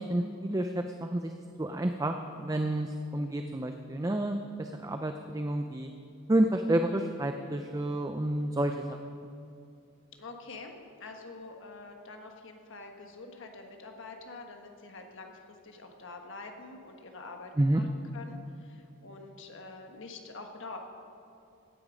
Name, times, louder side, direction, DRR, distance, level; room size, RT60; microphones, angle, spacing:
voice 1, 0.0-1.3 1.6-5.9 6.3-9.2 17.6-17.8, right 1 dB, 15° right, 6 dB, 0.4 m, -30 dB
voice 2, 10.2-15.4 15.6-20.8, left 3 dB, 60° left, 3 dB, 1.3 m, -46 dB
16.0 x 9.7 x 5.1 m, 2.5 s
head